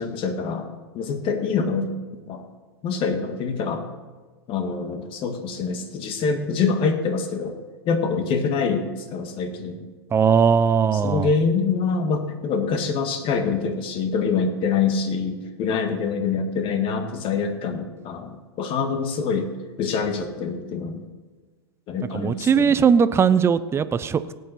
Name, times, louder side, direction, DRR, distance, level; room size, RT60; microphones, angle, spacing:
voice 1, 0.0-1.9 2.3-2.4 2.8-3.8 4.5-7.6 7.8-9.9 10.9-19.5 19.8-21.0 21.9-22.8, left 5 dB, 40° left, 7 dB, 1.8 m, -25 dB
voice 2, 10.1-11.3 22.1-24.3, right 6 dB, 20° right, 14 dB, 0.6 m, -19 dB
18.0 x 8.5 x 4.3 m, 1.4 s
hypercardioid pair, 105°, 14 cm